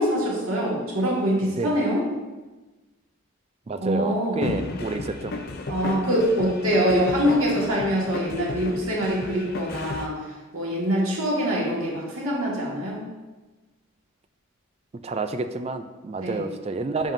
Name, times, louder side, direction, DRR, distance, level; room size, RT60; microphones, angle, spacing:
voice 1, 0.0-2.0 3.8-4.4 5.7-10.2 10.5-13.0 16.2-16.4, equal, 80° right, -4 dB, 1.8 m, -24 dB
voice 2, 1.4-1.8 3.7-5.3 15.0-17.1, right 3 dB, 30° right, 8 dB, 0.3 m, -29 dB
sound 1, 4.4-10.1, left 2 dB, 45° left, 0.5 m, -33 dB
7.3 x 5.4 x 2.6 m, 1.2 s
head